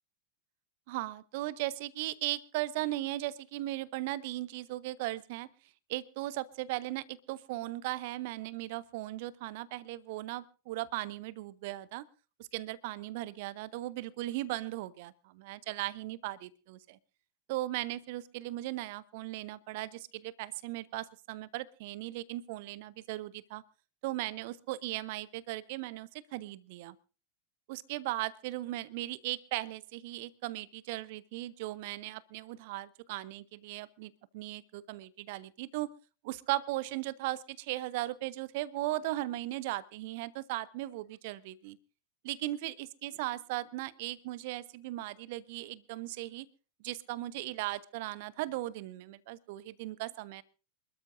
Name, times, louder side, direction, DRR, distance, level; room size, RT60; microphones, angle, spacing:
voice 1, 0.9-5.5 5.9-12.0 12.5-17.0 17.5-23.6 24.0-26.9 27.7-35.9 36.2-41.8 42.2-46.5 46.8-50.4, right 17 dB, 50° right, 20 dB, 0.8 m, -37 dB
27.0 x 13.0 x 2.6 m, 0.35 s
figure-of-eight pair, 90°, 0 cm